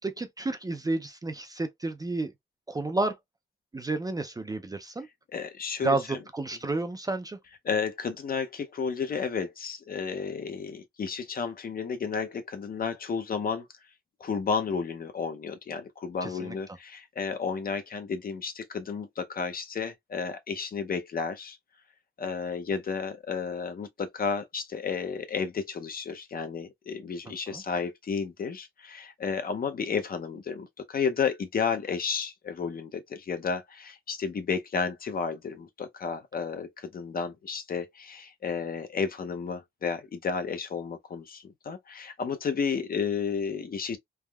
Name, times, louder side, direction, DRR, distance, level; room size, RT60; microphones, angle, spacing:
voice 1, 0.0-2.3 2.7-3.2 3.7-5.1 5.8-6.0 6.3-7.4 16.2-16.6 27.5-27.6, right 2 dB, 20° right, 0.4 m, -31 dB
voice 2, 5.3-6.2 7.6-13.7 14.2-21.6 22.2-44.0, left 5 dB, 45° left, 0.6 m, -32 dB
3.4 x 2.1 x 2.2 m
cardioid pair, 110°, 21 cm